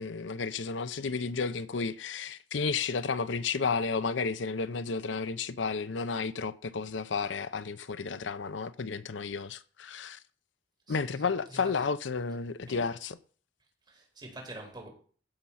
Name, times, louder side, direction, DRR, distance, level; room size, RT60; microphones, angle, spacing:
voice 1, 0.0-10.2 10.9-13.2, left 5 dB, 85° left, 0.6 m, -32 dB
voice 2, 10.9-11.9 12.7-12.8 13.9-14.9, right 1 dB, 25° right, 4.4 m, -46 dB
15.5 x 5.6 x 5.7 m
head